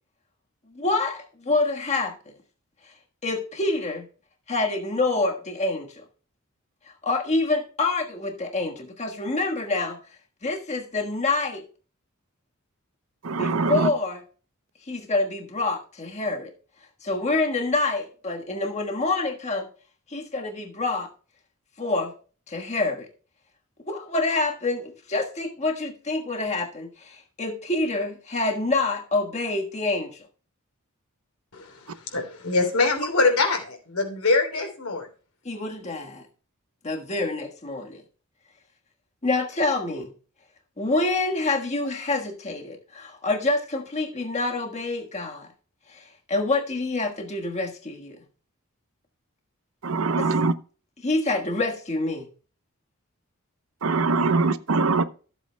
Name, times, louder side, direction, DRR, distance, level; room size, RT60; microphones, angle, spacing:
voice 1, 0.7-2.3 3.2-4.1 4.5-6.0 7.0-10.0 10.4-11.6 13.4-14.2 14.9-16.5 17.0-19.7 20.1-21.1 21.8-22.1 22.5-23.1 23.9-30.2 35.4-36.3 36.8-38.0 39.2-40.1 40.8-45.5 45.9-48.2 50.2-50.3 51.0-52.3, left 2 dB, 30° left, 1.4 m, -27 dB
voice 2, 13.3-13.7 49.8-50.5 53.8-55.0, right 3 dB, 70° right, 0.7 m, -22 dB
voice 3, 32.1-35.1, left 3 dB, 85° left, 3.3 m, -23 dB
14.5 x 8.0 x 2.2 m
head